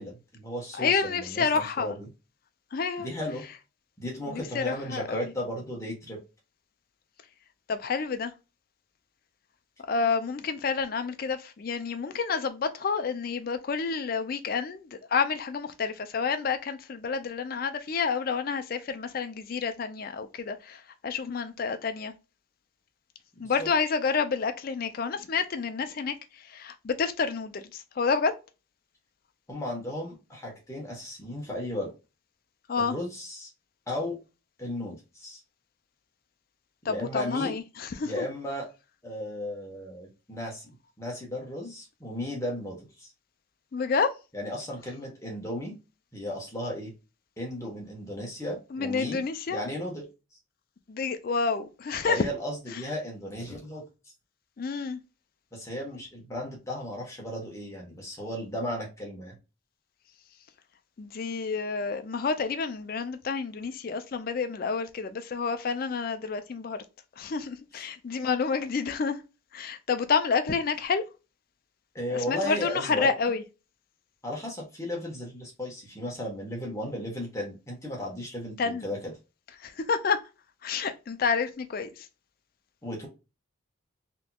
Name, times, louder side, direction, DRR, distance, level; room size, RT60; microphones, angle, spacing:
voice 1, 0.0-2.1 3.0-3.4 4.0-6.2 23.4-23.7 29.5-31.9 32.8-33.5 33.9-34.2 34.6-35.4 36.8-37.6 38.0-38.7 39.0-43.1 44.3-45.8 46.1-46.9 47.4-49.2 49.5-50.1 52.0-54.1 55.5-59.3 71.9-73.1 74.2-79.1 82.8-83.1, left 1 dB, 15° left, 1.1 m, -35 dB
voice 2, 0.7-1.9 2.7-3.1 4.3-5.3 7.7-8.3 9.9-22.1 23.4-26.1 26.5-28.3 32.7-32.9 36.9-38.3 43.7-44.1 48.7-49.6 50.9-52.3 54.6-55.0 61.0-66.8 67.2-69.2 69.5-71.0 72.1-73.4 78.6-78.8 79.6-80.2 80.6-81.9, left 5 dB, 45° left, 0.4 m, -29 dB
3.5 x 2.9 x 2.3 m
head